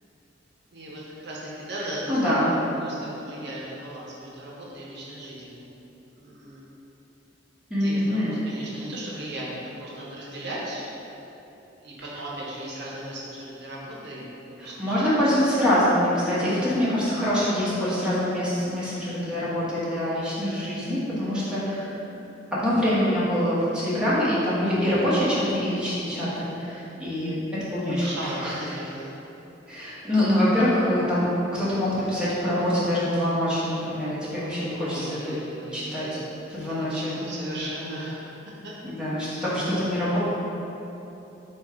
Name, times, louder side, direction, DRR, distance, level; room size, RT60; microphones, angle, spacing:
voice 1, 0.7-2.5 2.7-5.7 6.1-6.6 7.8-11.0 11.8-15.3 27.8-29.2 34.5-36.2 36.7-38.3 38.6-38.7, right 1 dB, 60° right, -5 dB, 0.7 m, -37 dB
voice 2, 2.1-2.5 7.7-8.3 14.6-22.0 22.5-28.6 29.7-31.2 31.5-35.4 35.7-36.2 36.5-37.2 38.8-40.2, equal, 5° right, -11 dB, 1.0 m, -25 dB
4.4 x 2.3 x 4.6 m, 3.0 s
head